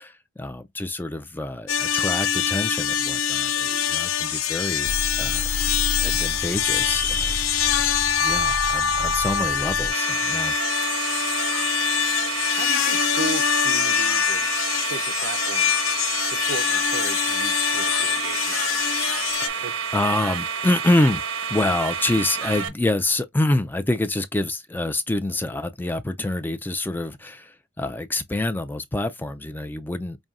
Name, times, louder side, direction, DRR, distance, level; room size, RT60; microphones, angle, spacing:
voice 1, 0.0-5.4 6.0-7.3 8.2-10.5 10.9-11.1 19.4-21.2 21.5-30.2, left 2 dB, 10° left, 0.3 m, -26 dB
sound 1, 1.7-19.5, left 8 dB, 75° left, 0.5 m, -24 dB
sound 2, 4.8-9.9, left 3 dB, 50° left, 0.9 m, -29 dB
sound 3, 9.9-22.7, right 6 dB, 90° right, 0.9 m, -29 dB
voice 2, 12.5-14.5 14.8-18.6 19.6-19.7, right 3 dB, 55° right, 0.5 m, -35 dB
5.3 x 2.6 x 2.4 m
head